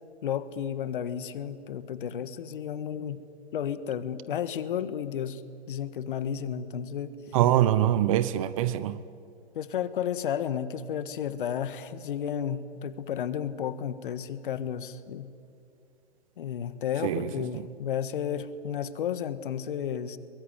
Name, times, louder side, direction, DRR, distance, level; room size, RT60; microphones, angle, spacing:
voice 1, 0.2-3.2 3.5-5.4 5.7-7.1 9.5-15.3 16.4-20.2, left 9 dB, 50° left, 1.6 m, -32 dB
voice 2, 7.3-9.0 17.0-17.6, right 12 dB, 30° right, 0.8 m, -24 dB
23.0 x 22.0 x 9.7 m
hypercardioid pair, 135°, 33 cm